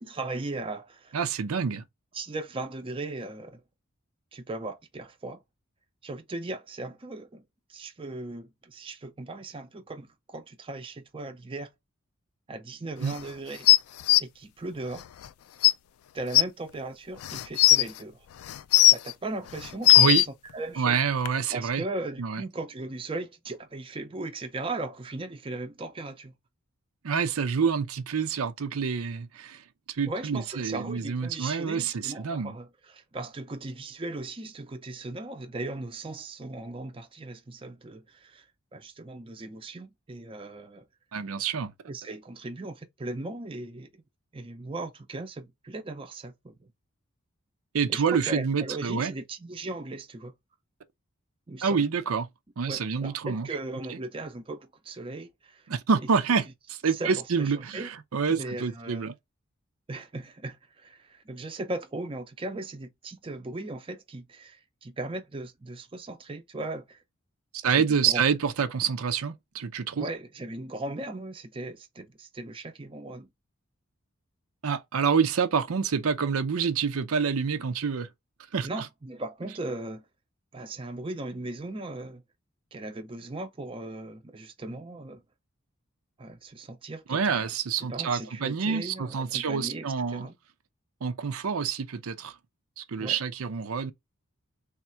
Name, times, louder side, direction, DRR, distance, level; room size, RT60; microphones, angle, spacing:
voice 1, 0.0-1.2 1.7-1.8 2.1-3.6 4.3-5.4 6.0-7.4 7.7-11.7 12.5-13.7 14.2-15.0 16.1-18.3 18.8-20.1 20.5-21.0 21.5-26.3 30.1-38.4 38.7-40.8 41.9-44.0 44.3-46.6 47.9-50.3 51.5-51.9 52.7-55.7 56.0-56.1 56.9-57.9 58.3-59.1 59.9-67.0 67.6-68.2 70.0-73.3 78.6-80.0 80.5-82.2 82.7-85.2 86.2-87.5 87.8-90.3 93.0-93.2, right 2 dB, 25° right, 0.5 m, -38 dB
voice 2, 1.1-1.8 13.0-13.2 19.9-20.2 20.8-21.8 22.2-22.4 27.0-29.6 29.9-32.6 41.1-41.7 47.7-49.1 51.6-52.3 52.6-53.5 55.7-59.1 67.5-70.1 74.6-78.1 78.5-78.9 87.1-90.3 91.0-92.4 92.8-93.9, right 6 dB, 80° right, 0.5 m, -27 dB
sound 1, 13.7-14.2 15.2-15.3 15.6-15.7 16.3-16.4 17.2-17.8 18.5-19.1 19.6-20.3 21.3-21.4, left 15 dB, 85° left, 0.3 m, -17 dB
3.5 x 2.3 x 4.2 m
head